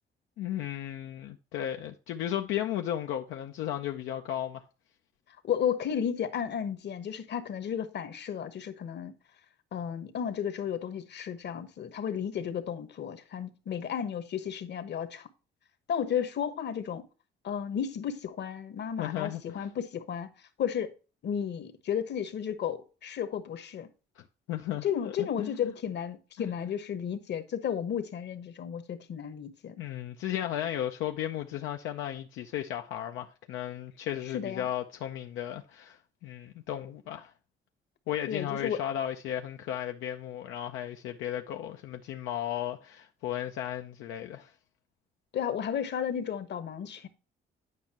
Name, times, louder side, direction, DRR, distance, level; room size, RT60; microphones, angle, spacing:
voice 1, 0.4-4.6 19.0-19.7 24.2-25.7 26.4-26.5 29.8-37.3 38.1-44.5, left 11 dB, 85° left, 0.5 m, -35 dB
voice 2, 5.4-9.1 9.7-15.3 15.9-17.0 17.4-20.3 20.6-20.9 21.2-23.9 24.8-29.8 34.3-34.7 38.3-38.8 45.3-47.1, left 8 dB, 60° left, 1.1 m, -33 dB
9.4 x 5.3 x 2.8 m
cardioid pair, 90°, 20 cm